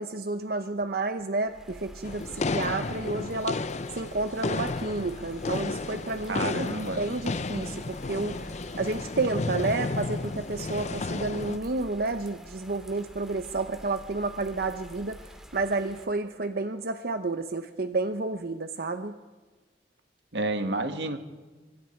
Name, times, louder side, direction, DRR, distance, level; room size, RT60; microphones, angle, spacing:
voice 1, 0.0-3.6 3.9-6.7 7.0-8.4 8.7-15.2 15.5-19.2, right 3 dB, 60° right, 8 dB, 0.9 m, -30 dB
Bird vocalization bird call bird song / Rain, 1.4-16.0, equal, 5° right, 2.0 m, -48 dB
sound 1, 2.0-11.6, left 3 dB, 40° left, 0.6 m, -33 dB
voice 2, 6.3-7.0 20.3-21.2, right 2 dB, 80° right, 7 dB, 1.7 m, -30 dB
26.0 x 25.5 x 4.6 m, 1.3 s
head